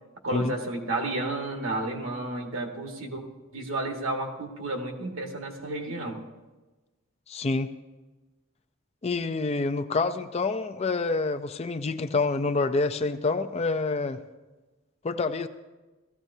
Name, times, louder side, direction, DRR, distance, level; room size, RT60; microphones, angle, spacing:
voice 1, 0.2-3.3 3.5-6.2, right 2 dB, 75° right, 2 dB, 1.6 m, -32 dB
voice 2, 7.3-7.7 9.0-14.2 15.0-15.5, left 3 dB, 30° left, 9 dB, 0.4 m, -27 dB
16.5 x 14.5 x 2.7 m, 1.2 s
head